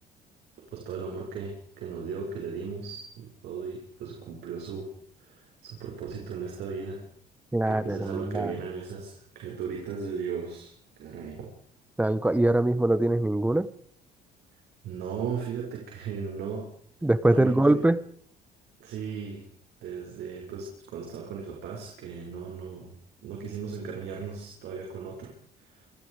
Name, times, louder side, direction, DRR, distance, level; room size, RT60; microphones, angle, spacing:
voice 1, 0.7-4.9 5.2-7.0 7.7-11.5 14.8-16.7 17.3-17.8 18.8-19.4 19.8-22.9 23.2-25.3 25.6-25.9, right 6 dB, 75° right, 0 dB, 6.4 m, -36 dB
voice 2, 7.5-8.5 12.0-13.7 17.0-18.0, right 1 dB, 10° right, 15 dB, 1.4 m, -23 dB
28.0 x 22.0 x 5.1 m, 0.62 s
cardioid pair, 110°, 17 cm